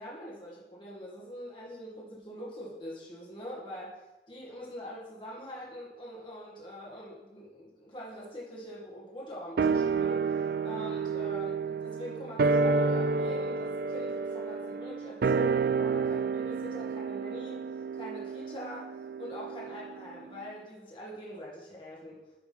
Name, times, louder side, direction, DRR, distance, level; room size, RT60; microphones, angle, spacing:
voice 1, 0.0-4.0 4.3-10.3 10.6-17.7 17.9-18.9 19.2-22.2, equal, 30° left, -5 dB, 1.9 m, -43 dB
sound 1, 9.6-20.2 20.4-20.5, right 4 dB, 55° right, 0.3 m, -30 dB
9.3 x 4.9 x 5.4 m, 1.1 s
head